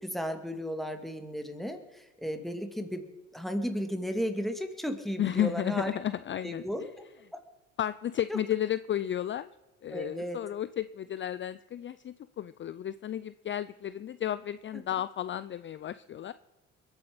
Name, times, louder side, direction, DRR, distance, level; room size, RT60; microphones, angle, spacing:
voice 1, 0.0-6.0 6.4-6.9 7.3-7.4 8.3-8.4 9.9-10.4 14.7-14.8, equal, ahead, 6 dB, 2.3 m, -34 dB
voice 2, 5.2-6.6 7.8-9.5 9.8-16.3, left 11 dB, 40° left, 15 dB, 0.5 m, -33 dB
22.0 x 9.1 x 5.2 m, 1.1 s
supercardioid pair, 85°, 32 cm